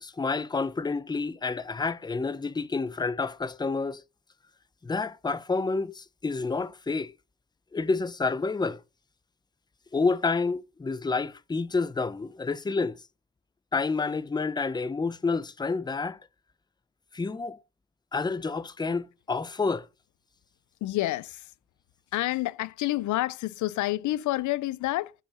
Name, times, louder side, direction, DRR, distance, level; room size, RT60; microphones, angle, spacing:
voice 1, 0.0-4.0 4.8-7.1 7.7-8.8 9.9-13.0 13.7-16.2 17.1-17.6 18.1-19.9, left 4 dB, 15° left, 0.6 m, -29 dB
voice 2, 20.8-21.5 22.1-25.1, left 16 dB, 75° left, 0.5 m, -28 dB
10.0 x 5.5 x 5.3 m
cardioid pair, 90°, 30 cm